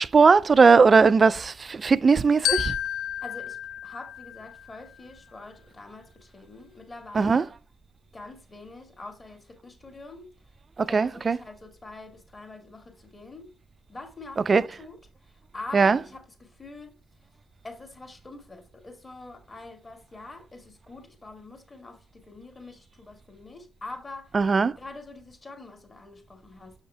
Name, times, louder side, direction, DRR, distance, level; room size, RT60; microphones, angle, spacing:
voice 1, 0.0-2.7 7.1-7.5 10.8-11.4 14.4-14.7 15.7-16.0 24.3-24.7, right 4 dB, 35° right, 0.4 m, -19 dB
Glockenspiel, 2.4-4.9, left 11 dB, 85° left, 0.4 m, -31 dB
voice 2, 3.2-7.5 8.1-10.3 10.9-13.5 13.9-15.0 15.3-16.9 17.6-24.3 24.8-26.7, left 3 dB, 30° left, 2.1 m, -44 dB
7.3 x 5.5 x 3.4 m
cardioid pair, 90°, 0 cm